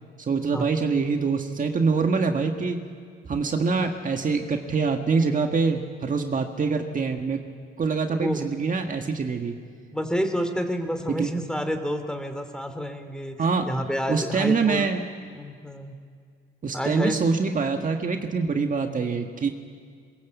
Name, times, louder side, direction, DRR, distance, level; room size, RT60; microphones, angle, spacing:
voice 1, 0.2-2.8 3.3-7.4 7.8-9.6 11.1-11.3 13.4-13.7 14.1-15.0 16.6-19.5, right 4 dB, 40° right, 4 dB, 1.8 m, -25 dB
voice 2, 8.1-8.4 9.9-14.9 15.3-15.9 16.7-17.2, equal, 5° left, 7 dB, 2.8 m, -29 dB
21.5 x 21.0 x 8.3 m, 2.1 s
cardioid pair, 90°, 20 cm